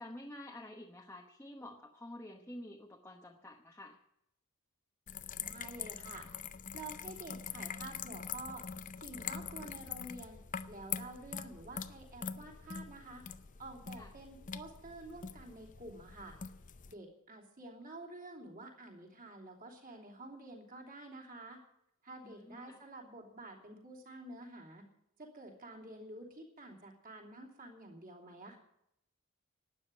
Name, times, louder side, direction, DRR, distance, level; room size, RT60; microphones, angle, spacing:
voice 1, 0.0-4.0 14.0-14.1 22.2-22.8, left 1 dB, 10° left, 0 dB, 0.9 m, -49 dB
sound 1, 5.1-16.9, left 7 dB, 35° left, 0.5 m, -44 dB
voice 2, 5.4-6.3 6.7-8.6 9.0-10.4 10.7-13.2 13.6-16.4 16.9-21.6 22.0-24.9 25.2-28.6, right 2 dB, 40° right, 0 dB, 3.0 m, -49 dB
12.5 x 9.1 x 9.6 m, 0.79 s
head